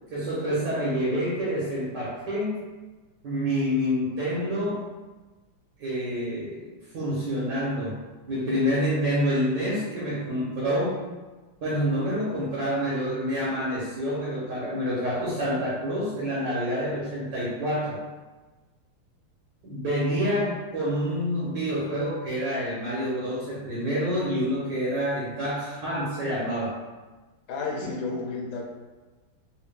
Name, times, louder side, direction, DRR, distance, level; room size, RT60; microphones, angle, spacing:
voice 1, 0.1-2.6 3.2-4.8 5.8-6.6 6.9-7.9 8.3-11.0 11.6-17.9 19.6-26.7 27.8-28.0, equal, 65° right, -7 dB, 1.4 m, -27 dB
voice 2, 27.5-28.6, left 3 dB, 70° left, -2 dB, 1.4 m, -31 dB
3.4 x 2.7 x 3.3 m, 1.2 s
omnidirectional pair, 2.4 m